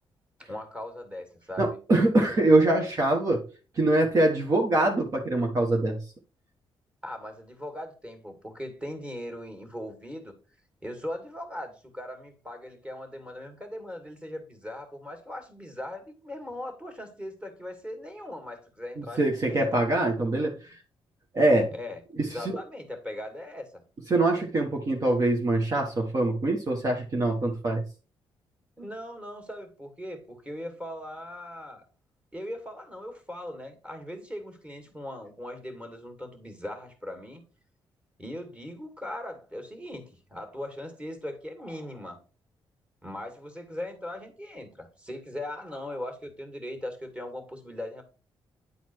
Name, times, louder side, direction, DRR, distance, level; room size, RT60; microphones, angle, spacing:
voice 1, 0.4-1.8 7.0-10.4 10.8-19.8 21.7-23.8 28.8-31.8 32.3-37.4 38.2-42.2 43.0-48.0, left 1 dB, 10° right, 2.3 m, -39 dB
voice 2, 1.6-3.4 3.7-6.0 19.0-20.7 21.3-21.7 22.2-22.6 24.1-27.8, right 2 dB, 40° right, 1.4 m, -24 dB
10.0 x 4.2 x 4.6 m
cardioid pair, 105°, 9 cm